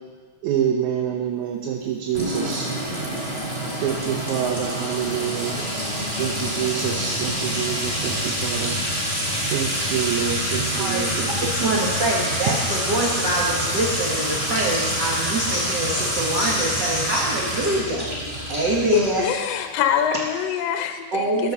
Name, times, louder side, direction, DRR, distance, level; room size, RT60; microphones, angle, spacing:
voice 1, 0.4-2.7 3.8-5.5 6.2-8.8 9.5-11.8, right 9 dB, 80° right, -1 dB, 2.2 m, -27 dB
Sink (filling or washing) / Trickle dribble / Fill (with liquid), 2.1-19.6, equal, 20° right, 3.0 m, -26 dB
voice 2, 10.7-11.0 11.3-18.1 18.5-19.3 21.1-21.5, right 2 dB, 50° right, -5 dB, 1.4 m, -24 dB
voice 3, 18.9-21.5, left 9 dB, 70° left, 6 dB, 1.7 m, -24 dB
13.0 x 5.3 x 6.9 m, 1.6 s
omnidirectional pair, 3.3 m